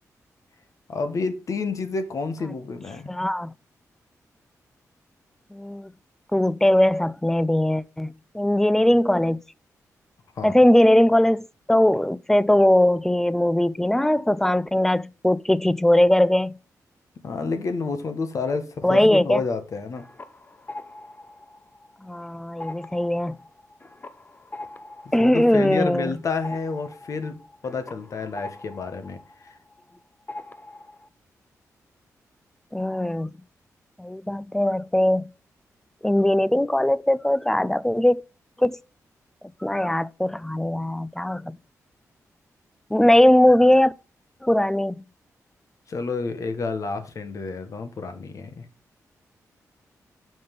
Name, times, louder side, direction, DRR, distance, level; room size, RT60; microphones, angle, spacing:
voice 1, 0.9-3.1 10.4-10.5 17.2-20.1 25.2-29.5 45.9-48.6, left 4 dB, 60° left, 1.2 m, -29 dB
voice 2, 3.1-3.5 5.5-5.9 6.3-8.1 8.3-9.4 10.4-16.5 18.8-19.4 22.0-23.3 25.1-26.1 32.7-33.3 34.0-35.3 36.0-38.2 38.6-38.8 39.6-41.6 42.9-43.9 44.4-45.0, left 1 dB, 5° left, 0.3 m, -20 dB
sound 1, 19.7-22.2 22.5-30.0 30.3-31.1, left 2 dB, 30° left, 0.7 m, -42 dB
5.7 x 5.3 x 5.2 m
cardioid pair, 75°, 6 cm